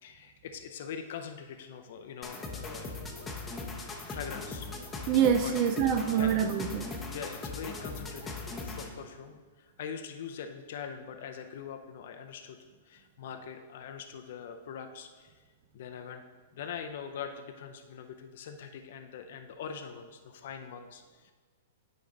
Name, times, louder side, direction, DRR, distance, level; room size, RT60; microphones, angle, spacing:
voice 1, 0.0-3.3 4.1-4.7 5.4-6.4 7.1-12.6 12.8-15.4 15.7-16.2 16.5-21.3, left 7 dB, 60° left, 6 dB, 0.5 m, -43 dB
sound 1, 2.2-9.0, left 3 dB, 10° left, 0.9 m, -40 dB
voice 2, 5.1-6.9, right 8 dB, 40° right, 7 dB, 0.4 m, -26 dB
9.3 x 5.1 x 3.9 m, 1.4 s
hypercardioid pair, 150°, 0 cm